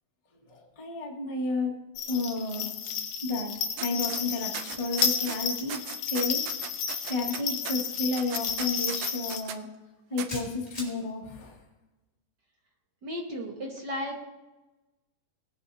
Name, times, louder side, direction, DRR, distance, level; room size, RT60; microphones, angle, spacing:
voice 1, 0.5-1.7 2.1-2.7 3.2-3.5 3.8-5.8 6.1-6.4 7.0-9.7 10.1-11.6, left 3 dB, 35° left, -2 dB, 0.5 m, -31 dB
sound 1, 2.0-9.4, left 7 dB, 80° left, 2.5 m, -32 dB
sound 2, 3.8-4.2 4.5-5.4 5.7-9.6 10.2-10.3, right 10 dB, 80° right, 1.9 m, -37 dB
sound 3, 9.4-9.6 10.3-10.9, left 1 dB, 10° left, 3.6 m, -40 dB
voice 2, 13.0-14.2, left 1 dB, 55° right, -1 dB, 1.1 m, -34 dB
19.5 x 9.5 x 2.8 m, 1.1 s
omnidirectional pair, 4.0 m